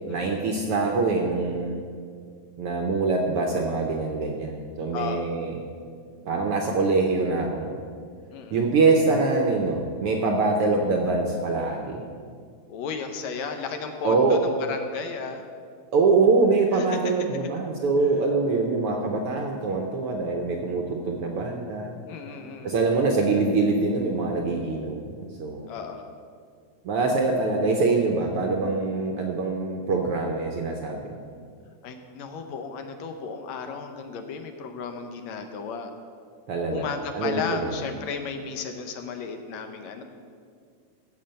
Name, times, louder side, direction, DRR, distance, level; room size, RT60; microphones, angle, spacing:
voice 1, 0.1-1.8 2.6-5.5 6.3-7.7 8.5-12.1 14.0-14.4 15.9-21.9 22.6-25.7 26.8-31.2 36.5-36.8 37.1-37.7, right 3 dB, 65° right, 2 dB, 1.4 m, -24 dB
voice 2, 4.9-5.3 8.3-8.6 12.7-15.4 16.7-16.9 22.1-22.8 25.7-26.1 31.8-35.9 36.7-40.0, left 5 dB, 75° left, 6 dB, 1.9 m, -34 dB
14.5 x 5.5 x 7.7 m, 2.1 s
omnidirectional pair, 3.5 m